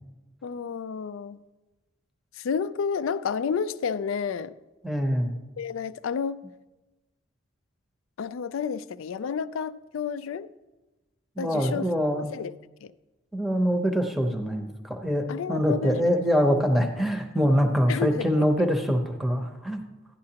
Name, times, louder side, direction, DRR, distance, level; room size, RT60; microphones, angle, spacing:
voice 1, 0.4-1.4 2.3-4.5 5.6-6.4 8.2-10.5 11.4-11.9 12.3-12.5 12.8-12.9 15.3-16.0 17.9-18.3 18.6-18.7, left 6 dB, 80° left, 15 dB, 0.4 m, -30 dB
voice 2, 4.8-5.3 11.4-12.3 13.3-19.8, equal, ahead, 4 dB, 0.7 m, -24 dB
11.5 x 10.5 x 2.9 m, 1.1 s
head